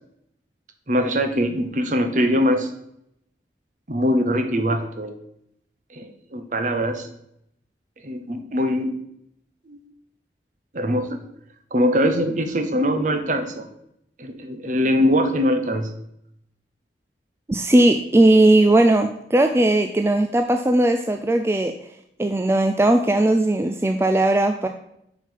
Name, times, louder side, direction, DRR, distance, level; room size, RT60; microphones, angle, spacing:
voice 1, 0.9-2.7 3.9-5.2 5.9-6.0 6.3-7.1 8.0-9.0 9.7-9.8 10.7-11.2 11.7-13.6 14.2-15.9, equal, 45° right, 7 dB, 0.9 m, -22 dB
voice 2, 17.5-21.7 22.2-24.7, right 1 dB, 15° right, 6 dB, 0.3 m, -18 dB
6.4 x 5.3 x 5.5 m, 0.75 s
head